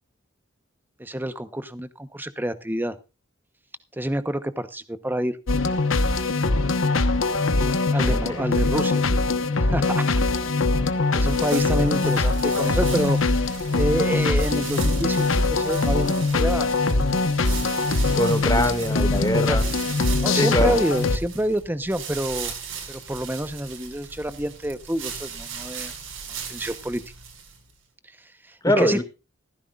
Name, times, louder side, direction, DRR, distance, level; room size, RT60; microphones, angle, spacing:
voice 1, 1.0-3.0 3.9-5.4 7.9-9.2 9.6-10.1 11.1-17.0 18.6-19.0 19.5-19.6 20.2-22.5 22.9-25.9 26.5-27.0 28.2-29.0, right 1 dB, 10° right, 12 dB, 0.9 m, -28 dB
sound 1, 5.5-21.2, left 3 dB, 75° left, 1.1 m, -22 dB
voice 2, 8.1-8.4 18.1-19.7 20.3-20.8 28.6-29.0, left 1 dB, 15° left, 8 dB, 2.0 m, -23 dB
sound 2, 11.2-27.7, right 6 dB, 75° right, 5.5 m, -38 dB
16.0 x 14.5 x 2.4 m, 0.29 s
head